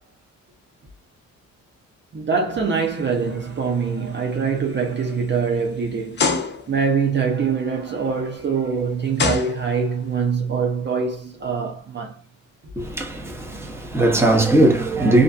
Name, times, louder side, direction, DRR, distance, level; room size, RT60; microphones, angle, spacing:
voice 1, 2.1-6.3 6.7-12.2, right 5 dB, 40° right, 0.6 m, -24 dB
sound 1, 3.0-3.3 3.8-4.0 4.7-4.8 6.2-6.9 8.4-8.5 9.2-10.1, left 4 dB, 35° left, 0.6 m, -24 dB
voice 2, 12.8-15.2, right 2 dB, 10° right, 0.8 m, -19 dB
2.5 x 2.2 x 2.5 m
cardioid pair, 90°, 30 cm